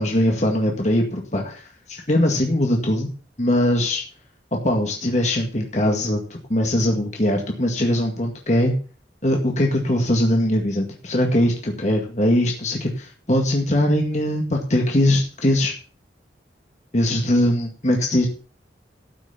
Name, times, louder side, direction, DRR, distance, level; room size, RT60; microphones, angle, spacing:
voice 1, 0.0-1.6 1.9-3.1 3.4-4.0 4.5-6.2 6.5-8.7 9.2-15.7 16.9-18.3, left 1 dB, 40° left, 1 dB, 1.9 m, -21 dB
13.5 x 6.2 x 5.7 m, 0.39 s
head